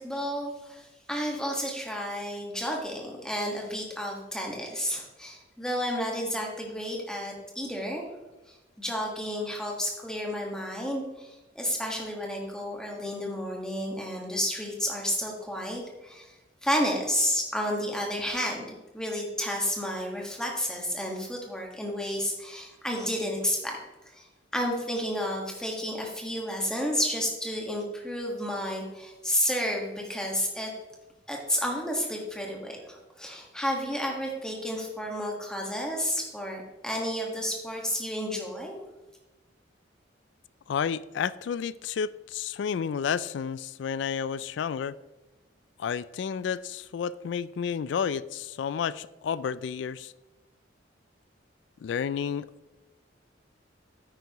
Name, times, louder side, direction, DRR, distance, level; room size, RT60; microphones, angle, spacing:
voice 1, 0.0-8.0 8.5-16.3 16.6-23.8 24.1-24.3 24.5-30.7 31.3-38.8, equal, 5° left, 0 dB, 1.5 m, -31 dB
voice 2, 40.7-45.0 45.8-50.1 51.8-52.5, left 7 dB, 70° left, 18 dB, 0.3 m, -31 dB
9.7 x 9.2 x 3.0 m, 1.1 s
head